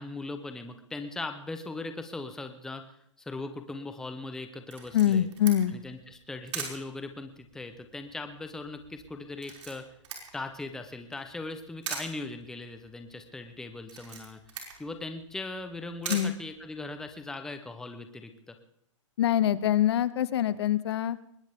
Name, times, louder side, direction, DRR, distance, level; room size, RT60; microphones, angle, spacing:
voice 1, 0.0-2.8 3.2-5.3 5.7-9.8 10.3-14.4 14.8-18.6, left 2 dB, 5° left, 7 dB, 0.8 m, -39 dB
Camera, 4.7-17.2, right 5 dB, 65° right, 5.6 m, -44 dB
voice 2, 4.9-5.7 16.1-16.3 19.2-21.2, left 11 dB, 55° left, 16 dB, 0.8 m, -24 dB
21.0 x 19.0 x 3.6 m, 0.71 s
hypercardioid pair, 160°, 17 cm